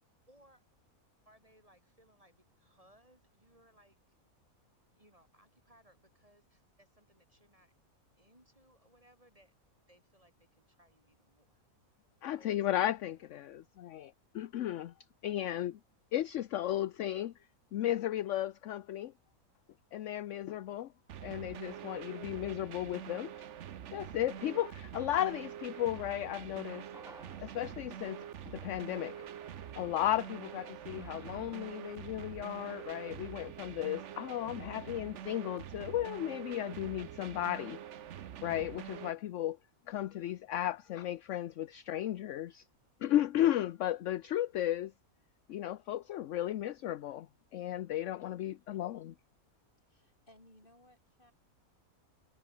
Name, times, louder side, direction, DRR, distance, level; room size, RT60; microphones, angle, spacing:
voice 1, 0.3-0.6 1.2-4.0 4.9-7.7 8.2-9.5 9.9-11.6 12.2-12.7, equal, 25° right, 7.7 m, -65 dB
voice 2, 12.2-14.9 15.2-15.8 16.1-17.3 17.7-19.1 19.9-20.9 21.2-23.3 23.9-26.8 27.4-29.2 29.8-37.8 38.4-39.6 39.9-42.7 43.0-44.9 45.5-49.1, left 12 dB, 65° left, 0.9 m, -35 dB
sound 1, 21.1-39.1, right 10 dB, 60° right, 1.1 m, -46 dB
sound 2, 26.2-34.7 35.0-35.1, equal, ahead, 1.9 m, -61 dB
voice 3, 49.8-51.3, left 1 dB, 35° left, 7.0 m, -62 dB
omnidirectional pair, 1.5 m